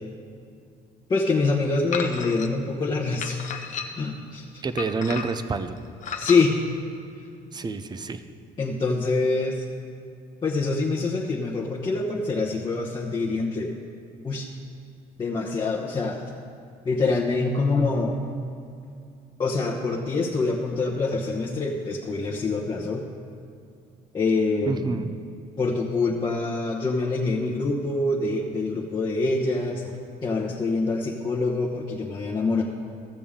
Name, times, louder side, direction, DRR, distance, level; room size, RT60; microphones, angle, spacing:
voice 1, 1.1-3.4 4.0-4.6 6.2-6.6 8.6-9.6 10.4-13.7 14.2-14.5 15.2-16.2 16.8-18.2 19.4-23.0 24.1-25.1 25.6-30.0 30.2-32.6, left 3 dB, 30° left, -3 dB, 1.0 m, -25 dB
sound 1, 1.9-2.5 3.2-4.1 4.8-5.5 6.0-6.4, left 6 dB, 45° left, 0.8 m, -33 dB
voice 2, 4.6-5.8 7.5-8.2 24.7-25.1, right 4 dB, 25° right, 11 dB, 0.5 m, -28 dB
15.5 x 6.9 x 3.7 m, 2.4 s
cardioid pair, 110°, 17 cm